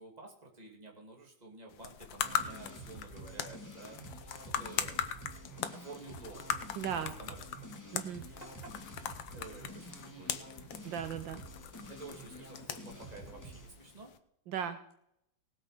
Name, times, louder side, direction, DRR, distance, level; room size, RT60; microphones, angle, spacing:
voice 1, 0.0-4.0 4.4-5.1 5.7-6.5 6.9-7.5 8.1-10.5 11.9-14.1, right 3 dB, 20° right, 0 dB, 2.7 m, -51 dB
sound 1, 1.7-14.2, left 9 dB, 75° left, 1.6 m, -41 dB
sound 2, 2.2-13.7, right 1 dB, 10° left, 2.0 m, -49 dB
voice 2, 6.8-7.1 7.9-8.3 10.8-11.4 14.5-14.9, right 8 dB, 75° right, 10 dB, 1.5 m, -37 dB
18.0 x 8.2 x 5.0 m, 0.74 s
omnidirectional pair, 2.1 m